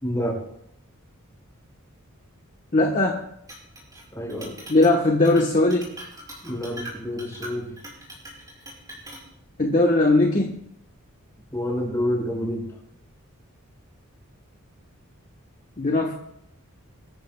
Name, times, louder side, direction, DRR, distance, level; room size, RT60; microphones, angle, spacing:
voice 1, 0.0-0.4 4.1-4.5 6.4-7.7 11.5-12.6, equal, 15° left, -3 dB, 5.7 m, -28 dB
voice 2, 2.7-3.2 4.7-5.8 9.6-10.6 15.8-16.1, left 2 dB, 35° left, 0 dB, 1.2 m, -19 dB
Chink clink, 3.5-4.0 4.3-5.0 5.2-5.4 5.7-9.2, right 1 dB, 15° right, 5.0 m, -41 dB
23.5 x 13.5 x 2.3 m, 0.75 s
head